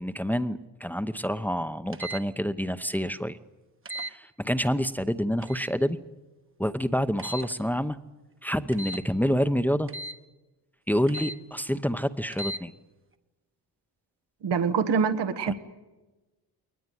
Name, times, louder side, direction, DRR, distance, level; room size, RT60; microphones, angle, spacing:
voice 1, 0.0-3.4 4.0-6.0 6.6-8.0 8.4-9.9 10.9-12.7 15.5-15.6, equal, 5° left, 11 dB, 0.8 m, -27 dB
sound 1, 1.9-2.2 3.9-4.1 5.4-5.7 7.2-7.5 8.7-9.0 9.9-10.2 11.1-11.4 12.3-12.6, right 1 dB, 30° right, 1.2 m, -36 dB
voice 2, 14.4-15.5, right 6 dB, 80° right, 10 dB, 1.5 m, -25 dB
21.5 x 19.5 x 9.3 m, 1.1 s
cardioid pair, 85°, 41 cm